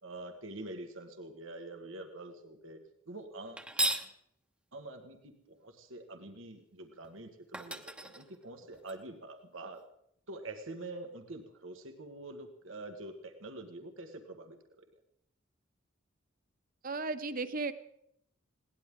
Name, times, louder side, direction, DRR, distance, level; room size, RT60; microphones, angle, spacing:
voice 1, 0.0-2.8 3.1-3.7 4.7-9.8 10.3-14.8, right 2 dB, 85° right, 5 dB, 1.8 m, -46 dB
sound 1, 3.6-4.1 7.0-7.1 7.5-8.9, right 1 dB, 5° right, 1.0 m, -35 dB
voice 2, 16.8-17.7, right 3 dB, 45° right, 12 dB, 1.0 m, -35 dB
20.5 x 18.5 x 3.8 m, 0.73 s
head